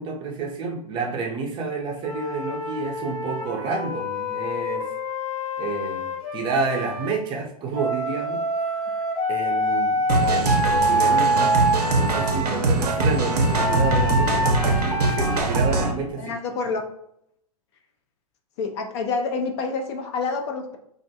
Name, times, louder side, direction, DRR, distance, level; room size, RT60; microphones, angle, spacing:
voice 1, 0.0-4.9 5.6-9.0 9.3-10.0 10.3-11.6 12.0-16.4, right 4 dB, 25° right, 0 dB, 0.5 m, -30 dB
Wind instrument woodwind instrument, 2.0-7.1 7.7-12.4 13.2-15.4, equal, 70° left, 1.1 m, -26 dB
sound 1, 10.1-15.9, right 3 dB, 85° right, 0.5 m, -22 dB
voice 2, 16.2-16.9 18.6-20.8, left 4 dB, 45° left, 4 dB, 0.4 m, -27 dB
2.4 x 2.1 x 2.7 m, 0.73 s
hypercardioid pair, 110°, 20 cm